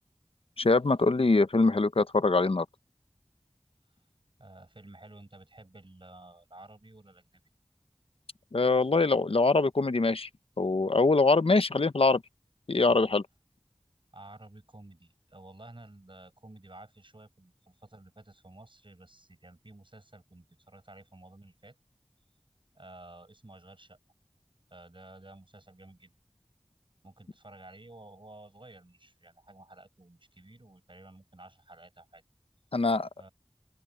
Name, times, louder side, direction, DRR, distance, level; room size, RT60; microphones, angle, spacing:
voice 1, 0.6-2.7 8.5-10.3 10.6-12.2 12.7-13.2 32.7-33.1, left 3 dB, 85° left, 0.8 m, -23 dB
voice 2, 4.4-7.4 14.1-21.8 22.7-24.0 24.7-26.1 27.0-32.2 33.2-33.3, right 2 dB, 65° right, 7.9 m, -52 dB
wide cardioid pair, 40°, 9 cm